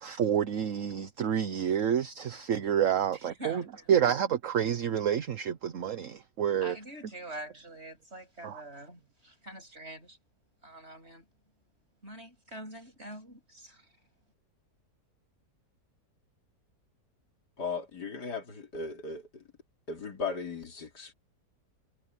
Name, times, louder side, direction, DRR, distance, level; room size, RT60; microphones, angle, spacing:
voice 1, 0.0-3.6 3.9-6.8 8.4-8.6, right 9 dB, 55° right, 1.2 m, -28 dB
voice 2, 3.1-3.9 6.6-10.2 10.6-11.2 12.0-13.9, right 1 dB, 40° right, 8.4 m, -45 dB
voice 3, 17.6-19.4 19.9-21.1, left 4 dB, 85° left, 3.7 m, -37 dB
omnidirectional pair, 1.7 m